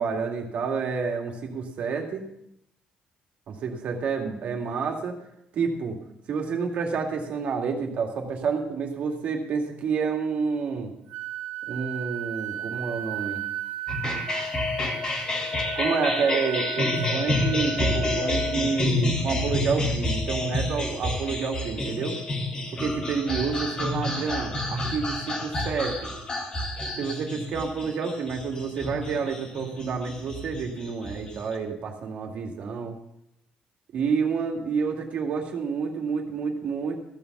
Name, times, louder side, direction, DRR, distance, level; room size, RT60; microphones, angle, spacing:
voice 1, 0.0-2.2 3.5-5.2 5.5-6.0 6.3-10.9 11.7-13.4 15.8-22.2 22.7-26.0 27.0-33.0 33.9-37.0, right 5 dB, 55° right, 2 dB, 2.2 m, -29 dB
Wind instrument woodwind instrument, 11.1-18.9, right 13 dB, 80° right, 1.1 m, -36 dB
sound 1, 13.9-31.5, left 2 dB, 30° left, 2.3 m, -29 dB
15.0 x 7.1 x 6.8 m, 0.79 s
cardioid pair, 160°, 3 cm